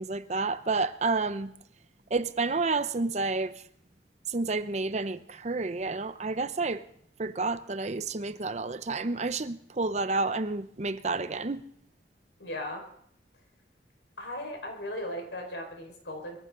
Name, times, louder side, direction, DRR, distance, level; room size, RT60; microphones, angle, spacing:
voice 1, 0.0-1.5 2.1-3.6 4.3-6.8 7.2-11.6, right 3 dB, 40° right, 0.7 m, -30 dB
voice 2, 12.4-12.8 14.2-16.4, left 1 dB, 80° left, 4.9 m, -37 dB
23.0 x 14.5 x 3.8 m
head